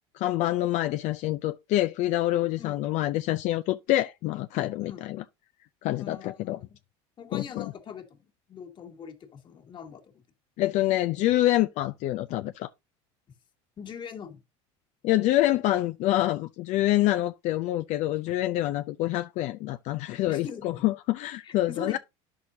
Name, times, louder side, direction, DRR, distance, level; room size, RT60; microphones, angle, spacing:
voice 1, 0.1-5.2 5.8-6.6 7.3-7.7 10.6-12.7 15.0-22.0, left 15 dB, 55° left, 0.4 m, -26 dB
voice 2, 6.0-6.8 7.2-10.2 13.3-13.4 13.8-14.4 20.3-20.8 21.4-22.0, left 6 dB, 35° left, 1.7 m, -42 dB
10.5 x 6.2 x 2.7 m
supercardioid pair, 115°, 14 cm